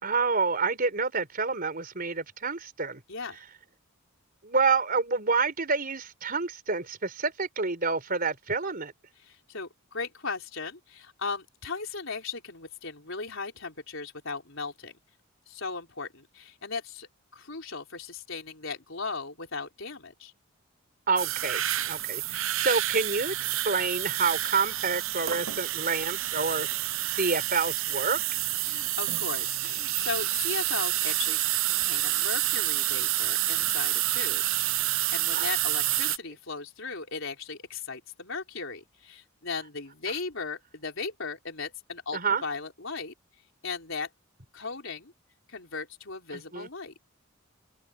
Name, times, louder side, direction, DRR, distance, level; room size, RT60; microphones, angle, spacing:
voice 1, 0.0-3.0 4.4-8.9 21.1-26.7 27.1-28.2 35.3-35.5 42.1-42.4 46.3-46.7, right 4 dB, 45° right, 4.5 m, -28 dB
voice 2, 3.1-3.4 9.2-15.0 15.5-20.3 28.6-34.4 34.7-43.1 43.6-44.1 44.5-45.1 45.5-46.9, left 4 dB, 60° left, 4.5 m, -37 dB
sound 1, 21.2-36.2, right 15 dB, 70° right, 0.9 m, -28 dB
open air
head